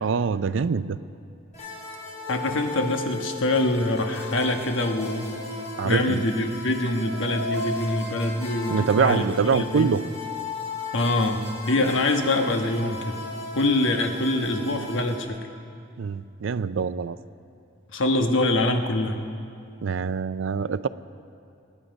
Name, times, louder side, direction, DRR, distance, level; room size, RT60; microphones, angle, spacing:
voice 1, 0.0-1.0 5.8-6.2 8.7-10.0 16.0-17.2 19.8-20.9, right 5 dB, 75° right, 15 dB, 0.4 m, -24 dB
sound 1, 1.5-15.2, left 3 dB, 35° left, 3.4 m, -35 dB
voice 2, 2.3-5.4 5.8-9.3 9.5-9.9 10.9-13.2 13.5-15.4 17.9-19.2, left 2 dB, 75° left, 5 dB, 1.2 m, -24 dB
25.0 x 10.0 x 5.2 m, 2.5 s
head